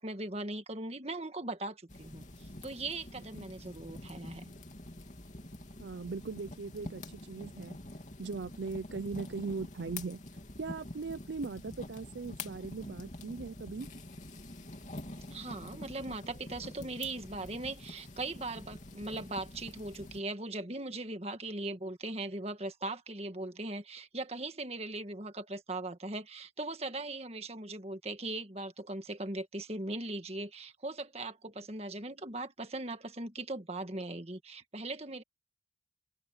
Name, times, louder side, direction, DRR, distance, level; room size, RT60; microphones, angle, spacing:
voice 1, 0.0-4.5 15.3-35.2, right 2 dB, 35° right, 1.7 m, -39 dB
sound 1, 1.9-20.2, left 2 dB, 40° left, 2.9 m, -47 dB
voice 2, 5.8-7.8 8.2-10.2 10.6-13.9, right 4 dB, 65° right, 0.5 m, -39 dB
open air
head